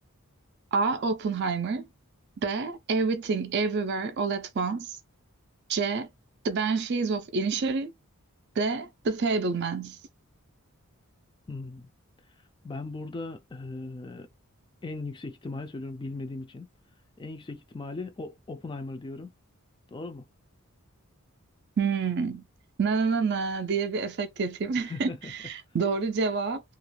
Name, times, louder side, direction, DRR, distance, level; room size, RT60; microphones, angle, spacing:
voice 1, 0.7-1.9 2.4-5.0 5.7-6.1 6.4-7.9 8.6-10.0 21.8-22.4 22.8-26.6, right 4 dB, 50° right, 0.4 m, -28 dB
voice 2, 11.5-11.9 12.6-14.3 14.8-16.7 17.2-19.3 19.9-20.2 24.8-25.3, left 3 dB, 20° left, 0.3 m, -38 dB
2.4 x 2.1 x 3.2 m
head